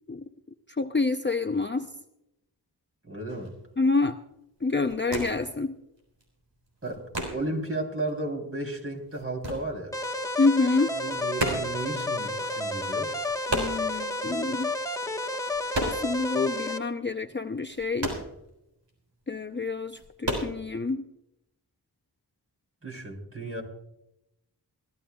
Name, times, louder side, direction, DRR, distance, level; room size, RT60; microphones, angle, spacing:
voice 1, 0.8-1.9 3.8-4.2 4.6-5.7 10.4-10.9 13.5-14.7 15.8-18.1 19.3-21.0, left 3 dB, 25° left, 6 dB, 0.6 m, -27 dB
voice 2, 3.1-3.5 6.8-7.0 7.3-10.0 11.0-13.1 22.8-23.6, right 2 dB, 35° right, 1 dB, 3.5 m, -33 dB
sound 1, 3.3-3.5 4.0-4.3 4.6-5.6 5.8-7.7 8.0-10.3 10.6-16.3 16.6-16.7 17.1-19.0 19.4-19.5 19.9-20.5, right 1 dB, 85° right, 3.7 m, -34 dB
sound 2, 9.9-16.8, left 2 dB, 10° left, 1.2 m, -31 dB
23.0 x 14.5 x 2.3 m, 0.84 s
wide cardioid pair, 55°, 42 cm